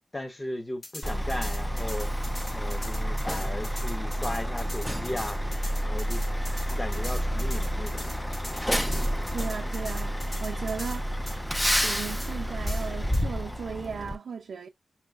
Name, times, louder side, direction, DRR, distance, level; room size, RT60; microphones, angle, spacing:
voice 1, 0.1-2.1 2.5-5.4 5.8-6.2 6.7-8.0, left 1 dB, 20° left, 0.9 m, -36 dB
sound 1, 0.8-11.0 11.3-11.4 11.7-11.8 12.2-12.3 12.7-13.2, left 2 dB, 40° left, 1.3 m, -42 dB
Truck, 1.0-14.2, equal, 5° left, 0.3 m, -29 dB
voice 2, 9.3-11.1 11.8-14.7, right 6 dB, 80° right, 0.5 m, -36 dB
5.5 x 3.0 x 2.4 m
wide cardioid pair, 145°, 0 cm